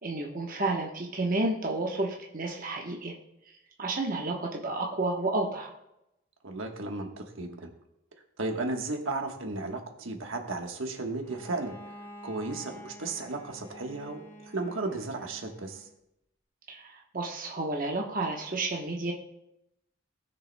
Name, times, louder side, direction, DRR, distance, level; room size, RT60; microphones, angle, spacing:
voice 1, 0.0-3.1 3.8-5.7 16.7-19.1, right 2 dB, 40° right, -1 dB, 1.0 m, -31 dB
voice 2, 6.4-7.7 8.4-11.8 12.2-15.9, right 2 dB, 80° right, 3 dB, 1.3 m, -34 dB
Bowed string instrument, 11.2-15.9, equal, 10° left, 0.7 m, -49 dB
19.0 x 6.6 x 2.2 m, 0.86 s
head